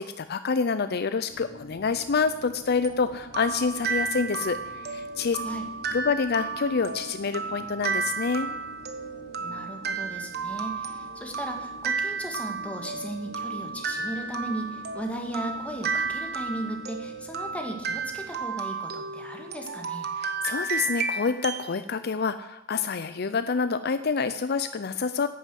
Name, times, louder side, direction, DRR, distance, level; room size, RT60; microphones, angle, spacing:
voice 1, 0.0-5.4 5.9-8.5 20.2-25.3, left 5 dB, 55° left, 11 dB, 0.5 m, -27 dB
sound 1, 1.3-18.4, left 1 dB, 80° left, 1.9 m, -48 dB
sound 2, 2.8-21.7, right 5 dB, 55° right, 1.1 m, -33 dB
voice 2, 9.4-20.1, right 1 dB, 5° left, 2 dB, 1.9 m, -36 dB
11.0 x 9.4 x 7.7 m, 0.93 s
head